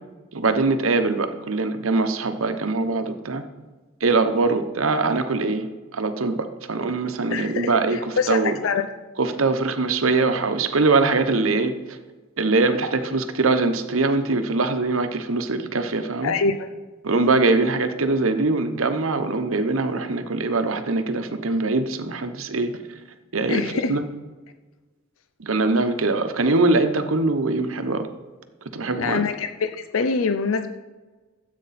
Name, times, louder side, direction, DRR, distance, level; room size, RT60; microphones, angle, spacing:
voice 1, 0.3-3.4 4.0-5.7 5.9-8.6 9.2-12.0 12.4-16.3 17.0-22.7 23.3-24.0 25.4-28.1 28.7-29.2, right 3 dB, 80° right, 9 dB, 1.0 m, -22 dB
voice 2, 7.3-8.9 16.2-16.7 23.5-24.0 29.0-30.7, left 4 dB, 80° left, 9 dB, 0.5 m, -25 dB
14.0 x 8.3 x 4.2 m, 1.3 s
head